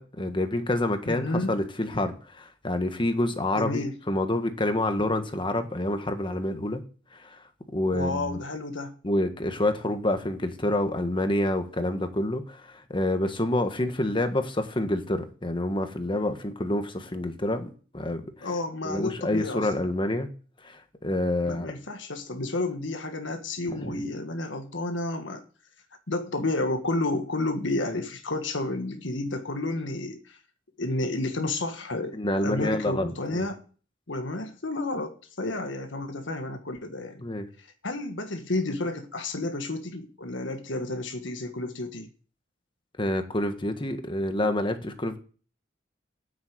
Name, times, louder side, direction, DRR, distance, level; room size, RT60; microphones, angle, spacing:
voice 1, 0.0-6.8 7.1-7.4 7.7-8.4 9.0-18.5 18.8-20.3 20.6-21.7 23.8-24.0 32.1-33.5 37.2-37.5 43.0-45.2, left 1 dB, 25° left, 1.5 m, -28 dB
voice 2, 1.0-1.6 3.5-3.9 7.9-8.9 18.4-19.8 21.4-25.4 26.1-30.4 30.8-33.6 34.1-37.2 37.6-42.1, left 2 dB, 80° left, 1.5 m, -31 dB
9.6 x 8.0 x 7.8 m
head